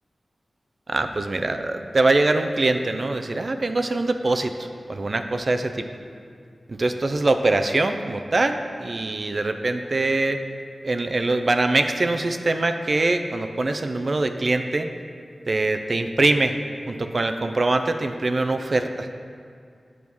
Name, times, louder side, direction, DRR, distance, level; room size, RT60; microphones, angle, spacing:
voice 1, 0.9-5.9 6.7-10.4 10.8-14.9 15.5-16.6 16.9-19.1, right 2 dB, 50° right, 7 dB, 0.5 m, -23 dB
8.5 x 4.5 x 7.0 m, 2.3 s
wide cardioid pair, 65°, 0 cm